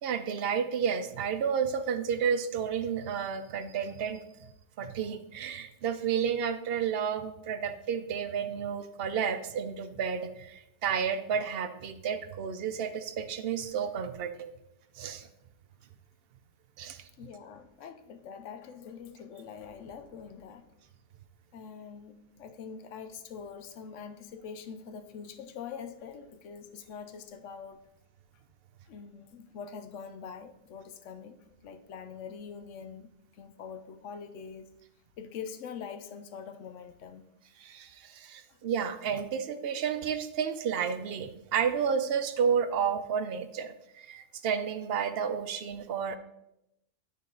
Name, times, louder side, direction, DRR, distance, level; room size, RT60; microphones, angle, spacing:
voice 1, 0.0-4.2 4.8-14.5 15.0-15.3 16.8-17.1 37.6-46.2, right 7 dB, 60° right, 10 dB, 0.7 m, -31 dB
voice 2, 17.2-20.7 21.5-27.8 28.9-34.7 35.2-37.3 38.5-38.6, left 6 dB, 80° left, 9 dB, 0.9 m, -44 dB
8.7 x 3.7 x 3.8 m, 0.84 s
omnidirectional pair, 1.3 m